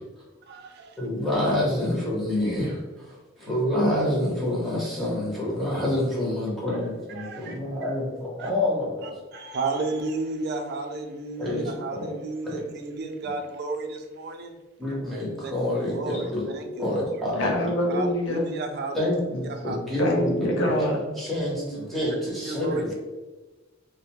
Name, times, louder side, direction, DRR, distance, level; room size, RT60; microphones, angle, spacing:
voice 1, 0.4-1.0 7.1-7.6 8.4-8.5 9.0-14.6 15.4-17.3 17.9-19.1 19.4-20.0 22.4-22.9, right 3 dB, 55° right, 4 dB, 0.3 m, -33 dB
voice 2, 1.0-9.1 11.4-11.7 12.0-12.1 12.4-12.6 14.8-16.4 16.7-17.6 18.9-22.9, left 1 dB, ahead, -6 dB, 0.7 m, -27 dB
voice 3, 17.4-18.4 20.0-21.0, left 1 dB, 70° left, 0 dB, 0.6 m, -24 dB
2.5 x 2.0 x 2.9 m, 1.2 s
head